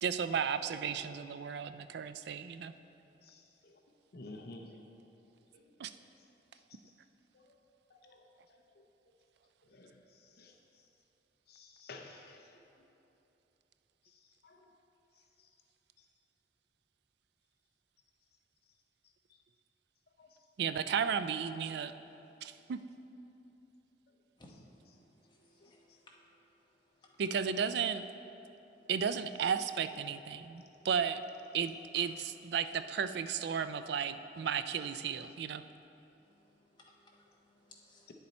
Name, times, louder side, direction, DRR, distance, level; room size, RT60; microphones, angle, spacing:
voice 1, 0.0-2.7 5.8-5.9 20.6-21.9 22.4-22.8 27.2-28.1 28.9-31.2 31.5-35.6, right 7 dB, 60° right, 11 dB, 0.3 m, -34 dB
voice 2, 3.2-3.8 4.1-4.8 5.5-5.6 7.3-7.6 7.9-8.2 8.5-8.8 9.6-10.6 11.5-12.5 14.0-14.6 15.4-15.5 16.0-16.1 20.2-20.3 25.6-26.0 38.1-38.2, left 2 dB, 60° left, 3 dB, 0.6 m, -53 dB
voice 3, 25.3-26.4 36.5-38.1, left 2 dB, 25° left, -2 dB, 1.0 m, -62 dB
9.5 x 6.9 x 4.2 m, 2.9 s
head